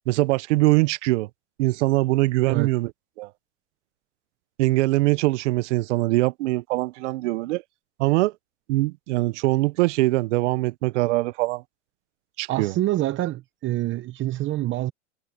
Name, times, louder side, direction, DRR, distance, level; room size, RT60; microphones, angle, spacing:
voice 1, 0.1-1.3 1.6-2.9 3.2-3.3 4.6-7.6 8.0-8.3 8.7-11.6 12.4-12.7, right 20 dB, 70° right, 0.8 m, -22 dB
voice 2, 12.5-14.9, right 15 dB, 30° right, 0.8 m, -26 dB
supercardioid pair, 120°, 36 cm